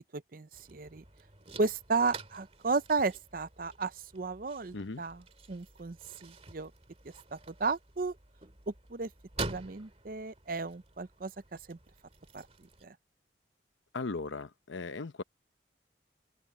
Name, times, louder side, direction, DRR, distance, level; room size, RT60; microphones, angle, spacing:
voice 1, 0.1-1.0 1.6-5.2 5.5-6.0 6.2-6.7 7.3-8.1 8.7-9.1 9.5-11.3 11.7-11.8 12.3-12.5 12.8-13.0, right 4 dB, 50° right, 0.6 m, -33 dB
sound 1, 0.5-12.9, right 3 dB, 35° right, 2.7 m, -47 dB
voice 2, 13.9-15.2, left 3 dB, 85° left, 0.8 m, -37 dB
head